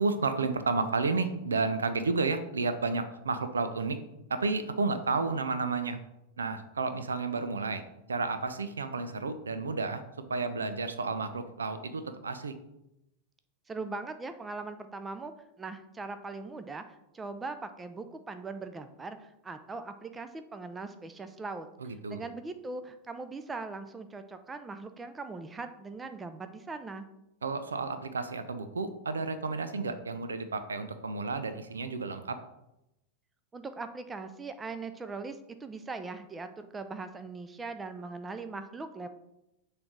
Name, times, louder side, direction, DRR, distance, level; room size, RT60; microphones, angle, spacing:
voice 1, 0.0-4.0 4.3-6.0 6.4-7.8 8.1-10.0 10.3-12.5 21.8-22.2 27.4-32.4, right 4 dB, 70° right, 10 dB, 0.6 m, -31 dB
voice 2, 13.7-15.3 15.6-21.7 22.1-27.1 33.5-39.1, right 3 dB, 15° right, 9 dB, 0.6 m, -40 dB
7.0 x 3.4 x 5.9 m, 0.87 s
figure-of-eight pair, 90°, 0 cm